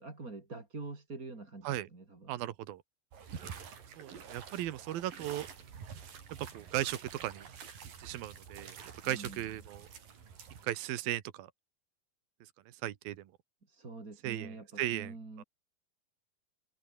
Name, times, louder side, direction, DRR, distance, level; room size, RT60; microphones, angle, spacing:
voice 1, 0.0-2.3 9.0-9.4 13.7-15.4, right 3 dB, 25° right, 3.9 m, -46 dB
voice 2, 2.3-2.8 4.0-5.5 6.4-7.5 8.0-8.8 9.0-9.9 10.6-11.5 12.8-13.2 14.2-15.1, right 13 dB, 80° right, 3.2 m, -36 dB
sound 1, 3.1-10.7, right 7 dB, 65° right, 5.2 m, -48 dB
omnidirectional pair, 4.2 m